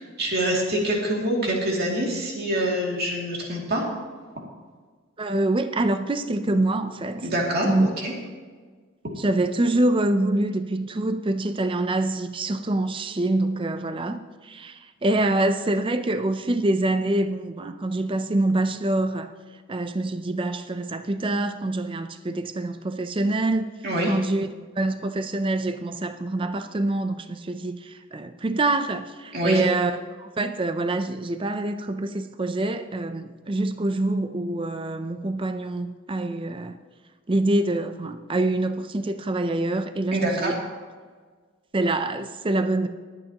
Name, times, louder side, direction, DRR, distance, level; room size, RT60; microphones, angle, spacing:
voice 1, 0.0-3.8 7.2-8.1 23.8-24.2 29.3-29.6 40.1-40.5, right 1 dB, 50° right, 2.5 m, -25 dB
voice 2, 5.2-7.2 7.6-7.9 9.2-19.3 19.7-23.7 24.1-24.5 24.8-36.8 37.3-40.6 41.7-42.9, right 2 dB, 25° right, 0.5 m, -25 dB
22.0 x 8.9 x 2.9 m
head